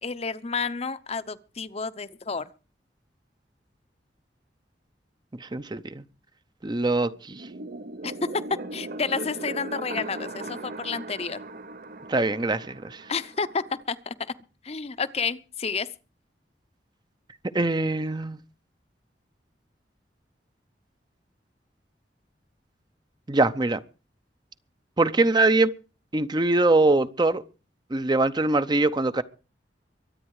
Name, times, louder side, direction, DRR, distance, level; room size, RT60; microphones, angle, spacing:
voice 1, 0.0-2.4 8.0-8.1 8.5-11.4 13.1-14.1 14.6-15.9, left 5 dB, 35° left, 0.8 m, -30 dB
voice 2, 5.4-6.0 6.6-7.5 12.1-13.0 17.5-18.4 23.3-23.8 25.0-25.7 26.1-27.4 27.9-29.2, right 2 dB, 25° right, 0.7 m, -23 dB
sound 1, 7.3-13.8, right 2 dB, 55° right, 0.8 m, -38 dB
23.0 x 9.2 x 4.8 m
head